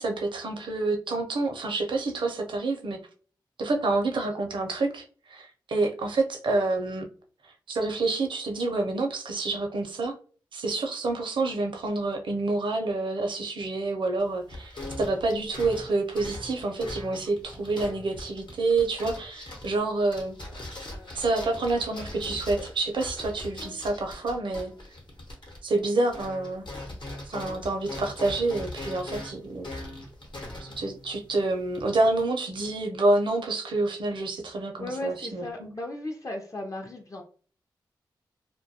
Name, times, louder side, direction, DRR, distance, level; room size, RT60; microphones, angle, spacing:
voice 1, 0.0-3.0 3.6-7.0 7.7-10.1 10.5-20.3 21.1-24.7 25.6-26.6 27.3-29.7 30.6-35.7, right 2 dB, 65° right, 3 dB, 0.5 m, -28 dB
sound 1, 14.2-25.8 26.1-32.2, left 1 dB, 65° left, 0.9 m, -41 dB
voice 2, 34.8-37.2, left 2 dB, 40° left, 2 dB, 0.5 m, -36 dB
2.2 x 2.2 x 2.7 m, 0.42 s
supercardioid pair, 40°, 9 cm